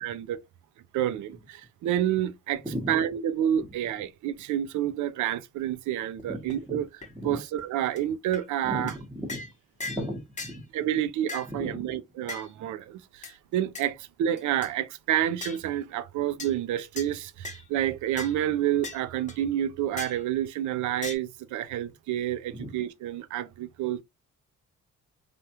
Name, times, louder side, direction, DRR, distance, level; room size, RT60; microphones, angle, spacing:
voice 1, 0.0-0.4 0.9-6.9 7.2-8.9 10.7-24.0, right 11 dB, 75° right, 0.5 m, -29 dB
sound 1, 6.2-6.3 6.5-6.6 7.0-7.1 7.6-7.7 8.0-8.1 8.3-8.4 8.9-9.0 9.3-9.5 9.8-10.1 10.4-10.6 11.3-11.5 12.3-12.5 13.2-13.3 13.8-13.9 14.4-14.7 15.4-15.6 16.4-16.5 17.0-17.1 17.4-17.7 18.2-18.3 18.8-19.0 19.3-19.4 20.0-20.2 21.0-21.2, left 3 dB, 25° left, 0.8 m, -38 dB
voice 2, 6.2-6.8 7.1-7.4 8.6-9.4 9.8-10.6 11.5-12.0 22.5-22.7, equal, 5° right, 1.0 m, -36 dB
3.3 x 2.3 x 2.8 m
cardioid pair, 90°, 30 cm